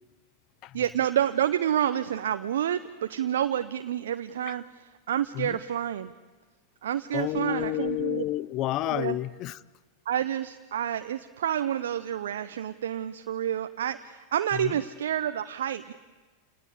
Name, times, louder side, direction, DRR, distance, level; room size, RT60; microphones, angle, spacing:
voice 1, 0.7-6.1 6.8-8.2 8.9-9.2 10.1-15.9, right 10 dB, 70° right, 0.7 m, -29 dB
voice 2, 7.1-9.6 14.5-14.8, left 15 dB, 45° left, 0.7 m, -30 dB
28.5 x 19.0 x 8.3 m
hypercardioid pair, 95°, 0 cm